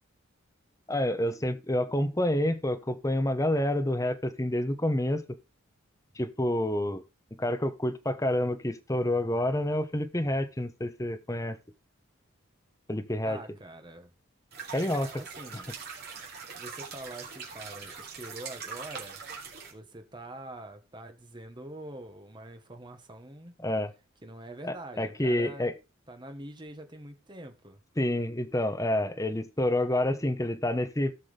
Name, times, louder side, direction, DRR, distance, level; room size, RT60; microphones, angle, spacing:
voice 1, 0.9-5.2 6.2-7.0 7.4-11.6 12.9-13.4 14.7-15.1 23.6-23.9 24.6-25.7 28.0-31.1, left 1 dB, 15° left, 0.9 m, -28 dB
voice 2, 13.2-14.1 14.8-15.7 16.5-19.2 19.7-23.5 24.2-25.7 26.1-27.8, right 1 dB, 25° right, 1.3 m, -45 dB
sound 1, 14.5-19.7, right 5 dB, 50° right, 2.8 m, -42 dB
17.0 x 6.1 x 3.3 m
head